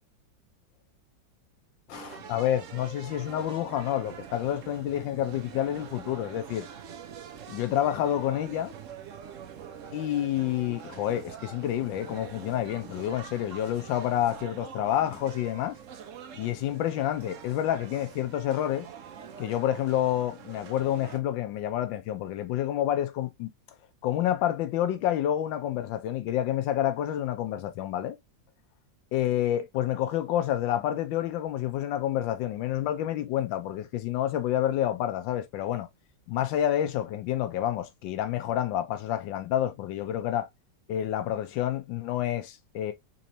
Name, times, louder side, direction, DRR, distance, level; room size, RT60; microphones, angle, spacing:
voice 1, 1.9-6.7 7.5-8.7 9.9-15.8 16.3-18.9 19.4-23.5 24.0-28.2 29.1-35.9 36.3-40.5 40.9-42.9, left 11 dB, 90° left, 1.3 m, -28 dB
sound 1, 1.9-21.2, right 8 dB, 65° right, 0.8 m, -45 dB
4.0 x 3.1 x 2.6 m
omnidirectional pair, 2.0 m